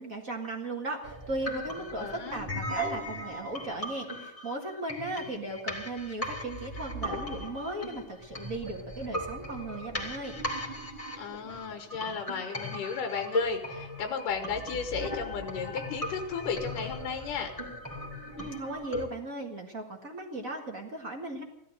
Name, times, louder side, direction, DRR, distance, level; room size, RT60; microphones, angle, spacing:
voice 1, 0.0-10.4 18.4-21.4, right 2 dB, 35° right, 1 dB, 1.7 m, -37 dB
sound 1, 1.0-19.0, equal, 10° left, 2.4 m, -37 dB
voice 2, 2.0-2.4 11.2-17.5, left 6 dB, 90° left, 5 dB, 2.8 m, -34 dB
16.5 x 12.5 x 6.5 m, 0.82 s
omnidirectional pair, 3.6 m